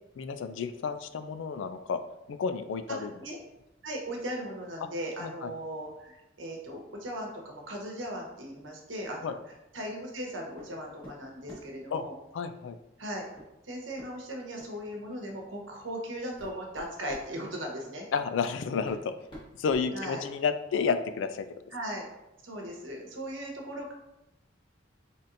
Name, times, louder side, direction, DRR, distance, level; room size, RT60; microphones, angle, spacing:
voice 1, 0.2-2.0 2.3-3.1 5.2-5.5 9.2-9.3 11.9-12.1 12.3-12.8 18.1-19.1 19.6-21.5, left 5 dB, 75° left, 10 dB, 0.3 m, -31 dB
voice 2, 3.8-9.4 9.7-12.1 13.0-13.3 13.6-18.1 19.9-20.2 21.7-22.1 22.4-23.9, equal, 90° right, 0 dB, 1.0 m, -38 dB
sound 1, 10.6-10.8 11.0-11.8 13.4-13.5 14.0-14.1 14.6-14.8 15.6-15.7 16.2-17.3 18.4-18.5 18.8-20.6, equal, 25° left, 1.2 m, -48 dB
4.2 x 3.5 x 2.6 m, 0.88 s
head